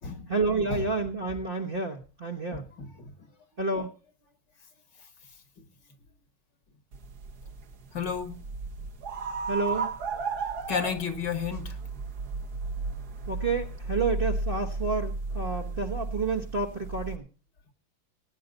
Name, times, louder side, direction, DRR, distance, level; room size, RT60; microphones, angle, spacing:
voice 1, 0.3-2.7 3.6-3.9 9.5-9.9 13.3-17.2, right 3 dB, 30° right, 1 dB, 1.2 m, -29 dB
voice 2, 2.5-3.1 7.9-8.4 10.7-11.8, left 6 dB, 60° left, 8 dB, 2.3 m, -32 dB
sound 1, 6.9-17.2, right 3 dB, 55° right, 1.7 m, -34 dB
19.5 x 9.4 x 4.0 m, 0.36 s
omnidirectional pair, 2.2 m